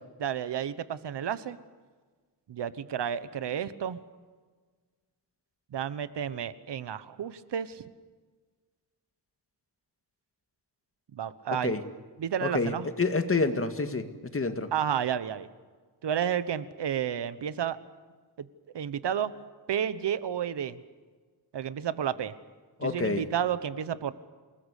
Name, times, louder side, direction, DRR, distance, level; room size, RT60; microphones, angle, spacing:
voice 1, 0.2-1.6 2.5-4.0 5.7-7.8 11.1-11.7 12.2-12.9 14.7-15.5 16.0-17.8 18.4-18.5 18.7-19.3 19.7-20.8 21.5-22.3 22.8-24.1, right 9 dB, 80° right, 14 dB, 1.2 m, -31 dB
voice 2, 12.4-14.1 14.3-14.7 22.8-23.2, left 3 dB, 30° left, 8 dB, 2.0 m, -28 dB
28.0 x 19.5 x 8.4 m, 1.5 s
wide cardioid pair, 120°, 41 cm